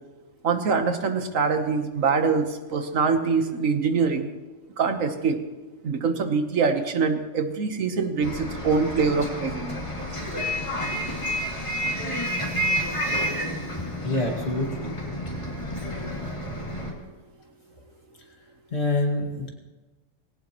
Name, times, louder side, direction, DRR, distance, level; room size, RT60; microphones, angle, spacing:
voice 1, 0.4-4.3 4.8-5.4 5.8-9.8, right 5 dB, 85° right, 7 dB, 1.5 m, -24 dB
Bus, 8.2-16.9, equal, 25° left, 2.6 m, -30 dB
voice 2, 14.0-14.9 18.7-19.5, left 2 dB, 55° left, 1 dB, 2.4 m, -26 dB
19.5 x 17.5 x 3.0 m, 1.2 s
omnidirectional pair, 1.3 m